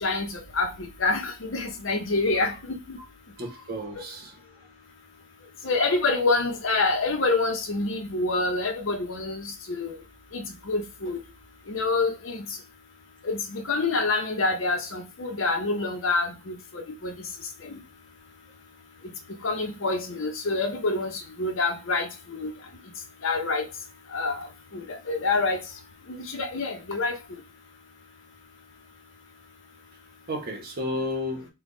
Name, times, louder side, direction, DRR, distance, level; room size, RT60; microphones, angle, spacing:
voice 1, 0.0-2.5 2.9-3.0 5.6-10.0 10.3-11.2 11.7-12.4 13.2-17.1 17.7-17.8 19.4-22.5 23.2-23.7 24.1-24.4 24.7-25.6 26.1-27.2, left 3 dB, 65° left, 0.7 m, -27 dB
voice 2, 3.4-4.3 15.8-15.9 30.3-31.5, left 1 dB, 45° right, 1.0 m, -32 dB
3.5 x 2.2 x 3.7 m
head